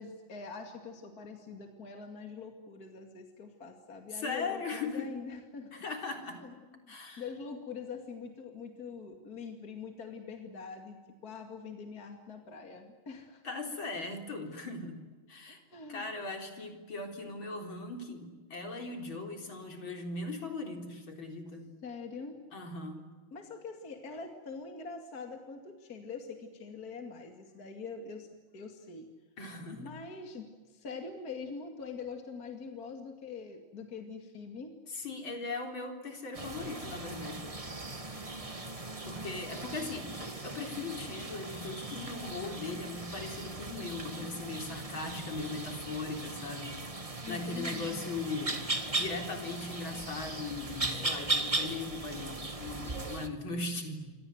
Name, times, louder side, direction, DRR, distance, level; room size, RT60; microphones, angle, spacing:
voice 1, 0.0-5.7 6.4-6.5 6.8-13.4 15.5-16.1 21.8-22.4 23.3-28.3 28.5-29.1 29.7-34.8 47.2-48.1, left 5 dB, 45° left, 4 dB, 2.8 m, -44 dB
voice 2, 4.1-5.1 5.7-6.4 6.9-7.2 13.4-15.0 15.3-15.6 15.9-21.7 22.5-23.1 29.4-29.9 34.9-37.5 39.0-46.7 47.3-48.6 48.9-54.1, left 3 dB, 65° left, 4 dB, 4.6 m, -39 dB
sound 1, 36.3-53.3, right 2 dB, 15° right, 1.7 m, -38 dB
28.5 x 25.0 x 8.0 m, 1.4 s
omnidirectional pair, 2.3 m